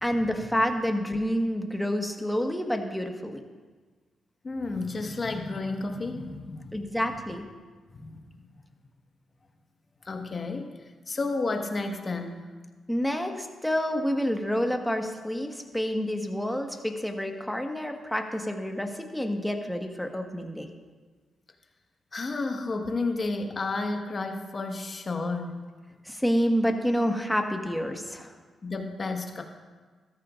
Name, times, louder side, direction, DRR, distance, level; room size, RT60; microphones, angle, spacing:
voice 1, 0.0-3.4 6.7-7.4 12.9-20.7 26.0-28.3, equal, 5° left, 3 dB, 1.5 m, -28 dB
voice 2, 4.4-6.8 7.9-8.2 10.0-10.8 11.1-12.4 22.1-25.6 28.6-29.4, left 3 dB, 45° left, 4 dB, 1.5 m, -31 dB
13.5 x 13.5 x 2.5 m, 1.4 s
supercardioid pair, 50°, 0 cm